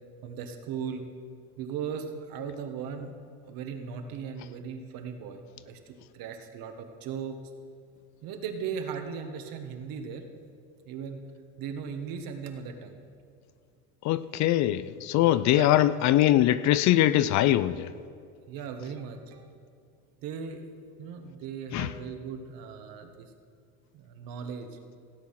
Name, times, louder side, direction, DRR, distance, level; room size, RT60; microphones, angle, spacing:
voice 1, 0.2-1.0 1.6-3.1 3.5-7.4 8.2-10.3 10.9-11.3 11.6-13.0 15.2-15.7 18.5-19.5 20.2-20.6 21.0-23.3 23.9-24.7, right 6 dB, 60° right, 1.5 m, -38 dB
voice 2, 14.0-17.9 21.7-21.9, left 13 dB, 50° left, 0.4 m, -22 dB
16.5 x 8.4 x 5.8 m
cardioid pair, 130°, 38 cm